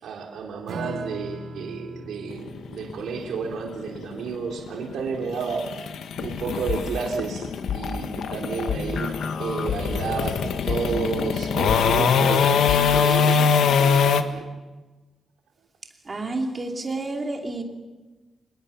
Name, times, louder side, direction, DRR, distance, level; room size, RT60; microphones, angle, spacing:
voice 1, 0.0-5.6 6.2-14.5, right 5 dB, 90° right, 1 dB, 3.5 m, -31 dB
Strum, 0.7-7.5, right 1 dB, 65° right, 2.5 m, -42 dB
sound 1, 2.3-14.2, left 6 dB, 85° left, 1.5 m, -23 dB
sound 2, 6.2-13.0, left 6 dB, 65° left, 1.2 m, -31 dB
voice 2, 16.0-17.6, right 2 dB, 25° right, 2 dB, 2.8 m, -29 dB
26.0 x 20.5 x 7.2 m, 1.2 s
wide cardioid pair, 170°, 0 cm